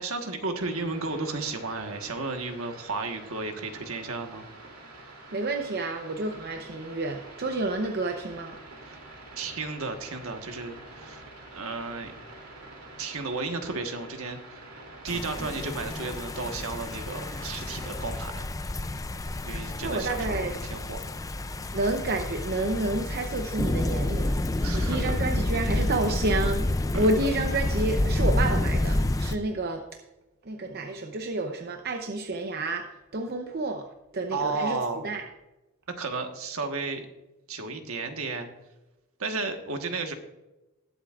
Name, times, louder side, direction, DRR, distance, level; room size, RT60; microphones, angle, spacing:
voice 1, 0.0-4.5 8.8-9.0 9.4-11.2 11.5-12.1 13.0-14.6 15.0-18.4 19.4-21.0 24.6-25.2 26.9-27.1 34.3-35.1 36.0-37.1 37.5-38.5 39.2-40.1, right 3 dB, 70° right, 5 dB, 1.4 m, -33 dB
sound 1, 0.6-18.2, right 2 dB, 90° right, 2.9 m, -47 dB
voice 2, 5.3-8.6 19.8-20.6 21.7-29.8 30.4-33.9 34.1-34.8 35.0-35.2, right 2 dB, 45° right, 4 dB, 0.7 m, -30 dB
sound 2, 15.1-29.4, left 1 dB, 15° left, 0.4 m, -29 dB
19.5 x 8.1 x 2.5 m, 1.0 s
head